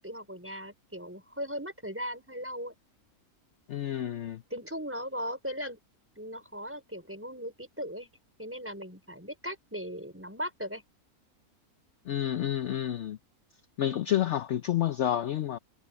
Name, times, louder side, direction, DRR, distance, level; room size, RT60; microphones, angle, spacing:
voice 1, 0.0-2.7 4.5-5.8 6.2-8.1 8.4-10.8, equal, 10° right, 4.7 m, -38 dB
voice 2, 3.7-4.4 12.1-13.2 13.8-15.6, left 11 dB, 60° left, 0.9 m, -29 dB
omnidirectional pair, 1.6 m